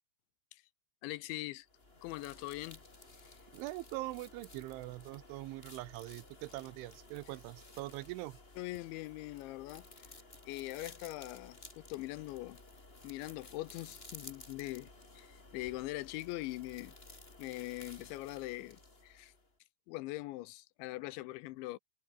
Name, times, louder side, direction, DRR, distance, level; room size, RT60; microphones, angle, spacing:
voice 1, 1.0-1.7 2.0-2.8 3.2-3.4 8.6-10.1 10.5-12.6 13.0-14.9 15.2-16.9 17.4-19.3 19.9-21.8, left 18 dB, 85° left, 3.0 m, -42 dB
sound 1, 1.7-19.5, left 2 dB, 15° left, 2.9 m, -55 dB
voice 2, 3.5-8.4, right 18 dB, 80° right, 3.3 m, -43 dB
omnidirectional pair, 5.5 m